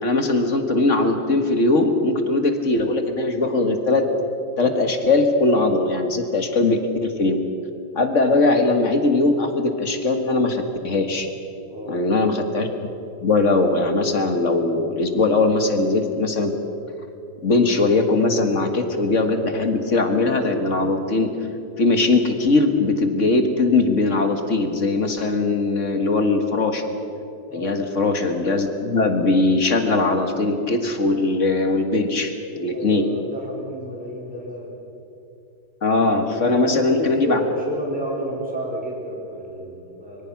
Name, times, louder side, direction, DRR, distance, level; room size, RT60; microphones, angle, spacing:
voice 1, 0.0-4.1 4.6-7.4 8.0-11.3 11.9-12.7 13.2-16.5 17.4-21.3 21.8-26.9 27.5-33.1 35.8-37.4, left 3 dB, 40° left, 6 dB, 1.8 m, -20 dB
voice 2, 11.7-12.0 27.5-27.8 32.7-34.7 36.4-40.3, equal, 5° right, -4 dB, 4.7 m, -31 dB
24.5 x 23.0 x 5.9 m, 2.8 s
omnidirectional pair, 2.1 m